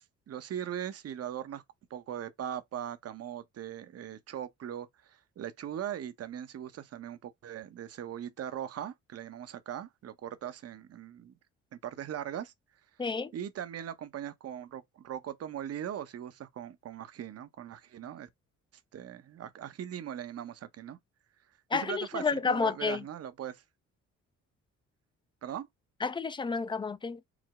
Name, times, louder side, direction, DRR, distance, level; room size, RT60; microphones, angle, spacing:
voice 1, 0.0-1.6 1.9-11.3 11.7-12.5 13.3-18.3 18.9-21.0 21.7-23.6 25.4-25.7, right 10 dB, 55° right, 0.7 m, -40 dB
voice 2, 13.0-13.3 21.7-23.0 26.0-27.2, left 4 dB, 15° left, 0.4 m, -30 dB
4.8 x 2.0 x 3.5 m
cardioid pair, 90°, 30 cm